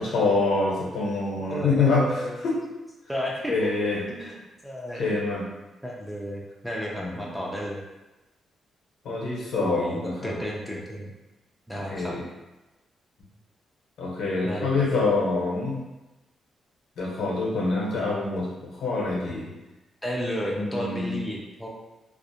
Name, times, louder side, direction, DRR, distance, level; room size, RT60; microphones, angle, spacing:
voice 1, 0.0-2.1 2.4-2.5 3.5-4.0 5.0-5.5 7.0-7.2 9.0-10.3 11.9-12.2 14.0-15.8 17.0-18.5 18.8-19.5 20.6-21.2, left 3 dB, 75° left, -4 dB, 0.7 m, -25 dB
voice 2, 1.5-2.5 3.1-3.5 4.1-5.1 5.8-7.8 9.6-11.1 11.7-12.1 14.4-15.1 20.0-21.7, equal, ahead, -3 dB, 0.3 m, -33 dB
2.4 x 2.0 x 2.7 m, 1.1 s
wide cardioid pair, 150°, 0 cm